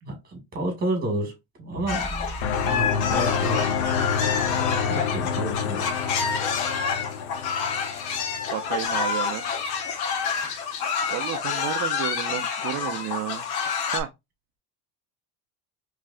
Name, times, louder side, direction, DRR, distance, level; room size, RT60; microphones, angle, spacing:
voice 1, 0.0-3.7 4.9-5.9, right 2 dB, 25° right, 2.0 m, -31 dB
sound 1, 1.7-5.1, equal, 15° left, 1.4 m, -40 dB
sound 2, 1.9-14.0, left 6 dB, 65° left, 1.1 m, -28 dB
sound 3, 2.4-9.1, left 7 dB, 85° left, 0.7 m, -28 dB
voice 2, 8.5-9.5 11.1-13.5 13.9-14.1, right 14 dB, 45° right, 0.5 m, -31 dB
4.5 x 3.2 x 2.4 m
cardioid pair, 150°, 40 cm